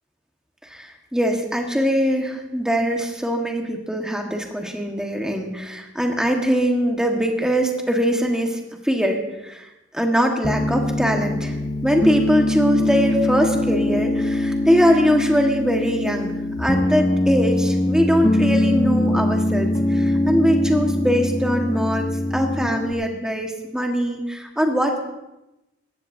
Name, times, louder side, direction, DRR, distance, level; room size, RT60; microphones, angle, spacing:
voice 1, 0.7-9.7 9.9-11.5 11.8-16.3 16.6-22.0 22.3-25.0, equal, 5° right, 1 dB, 1.6 m, -22 dB
Piano, 10.4-22.9, left 1 dB, 20° left, 0.9 m, -22 dB
18.5 x 14.5 x 2.8 m, 0.97 s
head